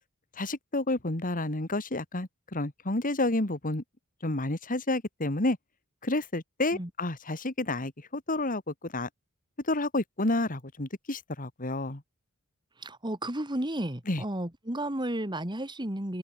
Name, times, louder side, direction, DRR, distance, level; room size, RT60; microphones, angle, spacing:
voice 1, 0.4-3.8 4.2-5.6 6.0-8.6 8.9-9.1 9.7-12.0 14.1-14.2, left 2 dB, 40° left, 2.3 m, -30 dB
voice 2, 12.8-16.2, right 1 dB, 20° right, 2.5 m, -33 dB
open air
head